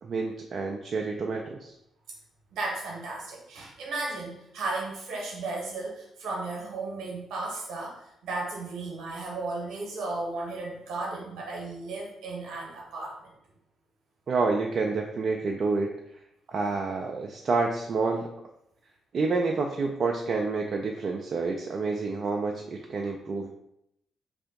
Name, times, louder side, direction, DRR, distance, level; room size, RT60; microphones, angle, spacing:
voice 1, 0.0-1.7 14.3-15.9 16.5-18.3 19.1-23.5, right 4 dB, 50° right, 1 dB, 0.3 m, -28 dB
voice 2, 2.5-13.3, right 3 dB, 65° right, -2 dB, 0.9 m, -35 dB
2.6 x 2.5 x 3.6 m, 0.78 s
figure-of-eight pair, 40°, 0 cm